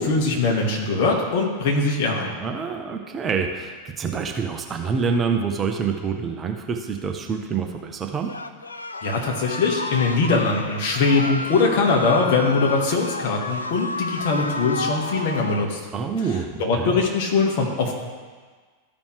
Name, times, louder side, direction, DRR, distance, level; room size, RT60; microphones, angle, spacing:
voice 1, 0.0-2.4 9.0-15.8 16.6-17.9, left 3 dB, 50° left, -1 dB, 1.7 m, -21 dB
voice 2, 2.4-8.3 15.9-17.0, right 5 dB, 20° right, 3 dB, 0.7 m, -26 dB
sound 1, 8.3-15.7, left 2 dB, 80° left, 0.4 m, -31 dB
13.5 x 5.2 x 3.3 m, 1.5 s
figure-of-eight pair, 90°, 0 cm